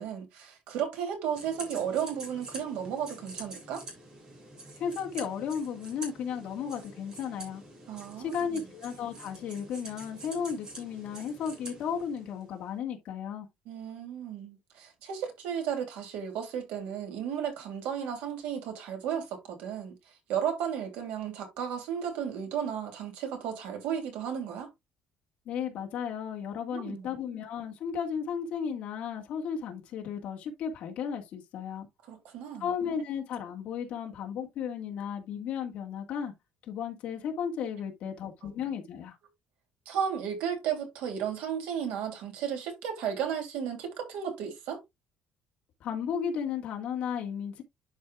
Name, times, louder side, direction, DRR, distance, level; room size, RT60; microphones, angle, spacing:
voice 1, 0.0-3.8 7.9-8.6 13.7-20.0 20.3-24.7 26.7-27.1 32.1-32.6 39.8-44.8, right 8 dB, 90° right, 3.0 m, -34 dB
sound 1, 1.3-12.6, right 2 dB, 30° right, 2.5 m, -46 dB
voice 2, 4.8-7.6 8.2-13.5 25.5-31.9 32.6-36.3 36.7-39.2 45.8-47.6, left 7 dB, 50° left, 1.7 m, -34 dB
11.0 x 4.8 x 2.4 m
cardioid pair, 180°, 3 cm